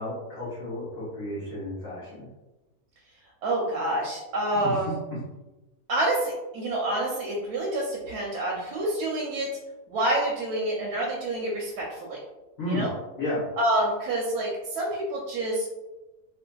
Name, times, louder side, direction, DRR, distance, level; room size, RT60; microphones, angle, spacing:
voice 1, 0.0-2.2 4.6-4.7 12.6-12.8 13.2-13.4, left 1 dB, 50° left, -9 dB, 1.0 m, -32 dB
voice 2, 3.4-5.0 5.9-9.5 9.9-12.2 12.7-12.9 13.6-15.7, right 1 dB, 85° right, -3 dB, 1.1 m, -27 dB
2.8 x 2.6 x 2.2 m, 1.1 s
omnidirectional pair, 1.6 m